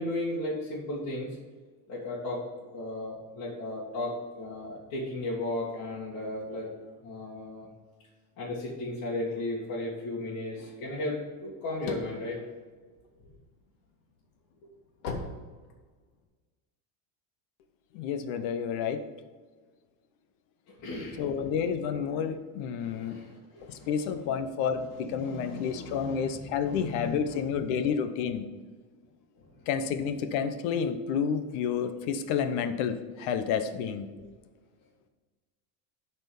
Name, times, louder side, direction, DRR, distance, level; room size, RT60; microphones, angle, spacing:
voice 1, 0.0-1.4 1.9-6.7 7.0-7.7 8.4-12.4 20.7-21.5 22.8-24.3 24.9-27.9 29.4-29.7, left 1 dB, 40° left, -8 dB, 2.2 m, -36 dB
sound 1, 11.3-13.5 14.0-16.2, left 3 dB, 70° left, 2.0 m, -39 dB
voice 2, 17.9-19.0 21.2-23.2 23.6-28.5 29.7-34.1, left 7 dB, 55° left, 9 dB, 0.9 m, -30 dB
12.0 x 4.5 x 5.3 m, 1.4 s
cardioid pair, 175°, 45 cm